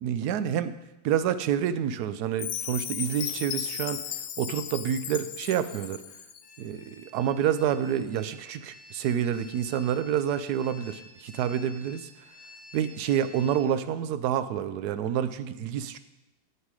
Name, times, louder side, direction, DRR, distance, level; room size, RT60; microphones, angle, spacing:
voice 1, 0.0-0.7 1.0-4.0 4.4-6.0 6.6-12.1 12.7-16.0, right 9 dB, 70° right, 12 dB, 1.0 m, -28 dB
Chime, 2.4-6.5, left 9 dB, 85° left, 0.6 m, -35 dB
sound 1, 6.4-13.6, left 3 dB, 65° left, 1.6 m, -51 dB
11.0 x 7.8 x 4.8 m, 0.98 s
omnidirectional pair, 2.0 m